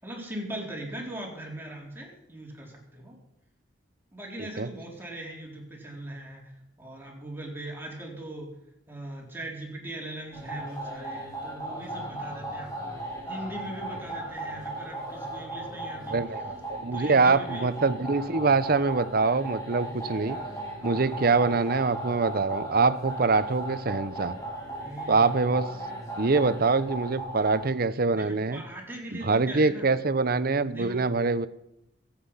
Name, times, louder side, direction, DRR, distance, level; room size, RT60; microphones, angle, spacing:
voice 1, 0.0-3.2 4.1-8.5 8.9-13.0 13.3-16.5 16.9-17.7 24.8-25.5 28.1-29.9 30.6-31.0, right 1 dB, 10° right, -2 dB, 3.9 m, -40 dB
sound 1, 10.3-27.7, right 1 dB, 20° left, 4.0 m, -37 dB
voice 2, 16.1-20.4 20.8-24.3 25.1-25.7 26.2-28.6 29.1-31.5, right 4 dB, 55° right, 14 dB, 0.8 m, -24 dB
22.5 x 8.7 x 5.6 m, 0.80 s
head